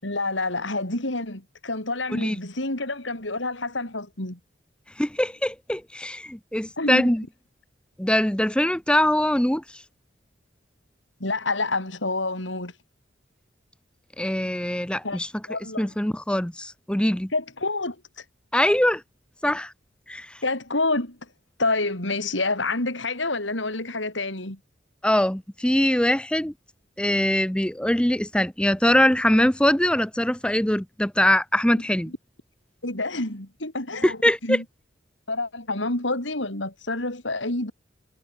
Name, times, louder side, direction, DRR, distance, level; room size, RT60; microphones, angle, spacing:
voice 1, 0.0-4.4 6.8-7.1 11.2-12.7 15.0-15.2 15.5-15.9 17.3-18.2 20.4-21.2 21.6-24.6 32.1-32.2 32.8-34.6 35.3-37.7, left 2 dB, 85° left, 5.9 m, -28 dB
voice 2, 5.0-7.2 8.0-9.8 14.2-15.3 15.8-17.3 18.5-19.0 19.4-19.7 20.1-20.3 25.0-26.5 27.0-32.1 34.0-34.6, left 1 dB, 5° left, 0.8 m, -22 dB
head